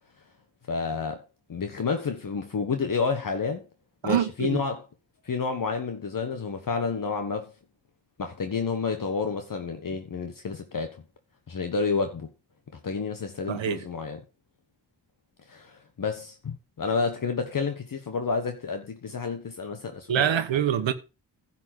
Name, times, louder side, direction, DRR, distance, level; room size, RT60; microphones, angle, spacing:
voice 1, 0.7-1.2 1.5-3.6 4.0-4.8 5.2-7.5 8.2-11.0 11.5-12.3 12.8-14.2 15.5-20.4, left 5 dB, 45° left, 1.4 m, -30 dB
voice 2, 4.0-4.6 13.5-13.8 20.1-20.9, right 10 dB, 80° right, 1.3 m, -25 dB
11.0 x 4.3 x 7.8 m
cardioid pair, 95°, 45 cm